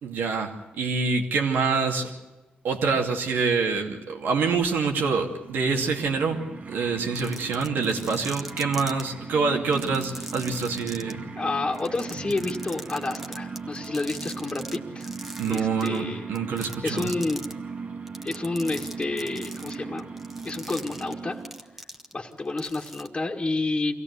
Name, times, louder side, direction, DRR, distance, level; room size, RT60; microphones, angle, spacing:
voice 1, 0.0-2.1 2.6-6.4 6.7-11.2 15.4-17.1, right 4 dB, 85° right, 3 dB, 2.6 m, -26 dB
sound 1, 5.2-21.8, right 4 dB, 45° right, 1.5 m, -38 dB
sound 2, 7.1-9.0 9.7-11.1 11.7-14.8 15.0-16.0 16.4-17.5 18.1-22.3 22.6-23.1, equal, 5° right, 1.5 m, -40 dB
voice 2, 11.4-15.1 15.5-16.2 16.5-17.4 18.2-20.1 20.4-21.4 22.1-24.0, left 3 dB, 25° left, -1 dB, 1.8 m, -30 dB
23.5 x 16.5 x 8.3 m, 1.1 s
cardioid pair, 75°, 3 cm